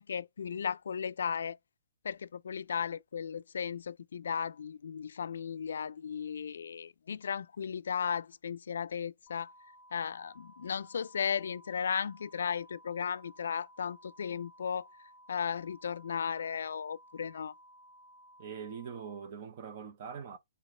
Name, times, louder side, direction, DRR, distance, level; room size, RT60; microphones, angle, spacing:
voice 1, 0.0-1.6 2.0-9.5 9.9-14.9 15.3-17.5, left 7 dB, 75° left, 0.3 m, -35 dB
sound 1, 9.3-19.3, equal, 15° left, 0.5 m, -58 dB
voice 2, 18.4-20.4, right 7 dB, 35° right, 0.7 m, -43 dB
4.1 x 3.8 x 3.1 m
hypercardioid pair, 170°, 0 cm